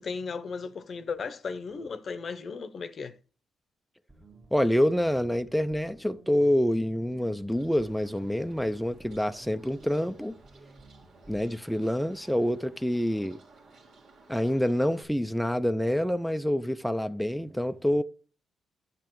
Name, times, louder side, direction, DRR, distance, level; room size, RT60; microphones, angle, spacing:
voice 1, 0.0-3.2, left 5 dB, 45° left, 0.7 m, -36 dB
sound 1, 4.1-11.5, right 2 dB, 35° right, 1.4 m, -54 dB
voice 2, 4.5-10.3 11.3-13.4 14.3-18.0, equal, ahead, 0.4 m, -27 dB
Bird, 7.5-15.0, right 3 dB, 75° right, 2.0 m, -56 dB
10.5 x 6.6 x 3.0 m
cardioid pair, 90°, 0 cm